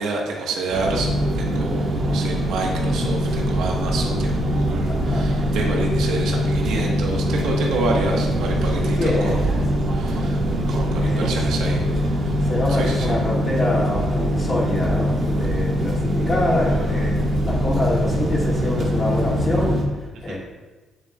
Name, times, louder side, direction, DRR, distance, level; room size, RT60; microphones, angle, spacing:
voice 1, 0.0-9.4 9.9-10.4 10.7-11.8 12.2-12.3 12.7-13.1 20.3-20.4, right 3 dB, 85° right, 0 dB, 1.5 m, -28 dB
sound 1, 0.7-19.8, equal, 55° right, 1.5 m, -22 dB
voice 2, 4.9-5.3 8.9-9.4 11.0-11.3 12.4-20.4, left 1 dB, 35° left, -5 dB, 2.7 m, -25 dB
9.0 x 7.8 x 2.5 m, 1.2 s
cardioid pair, 90°, 0 cm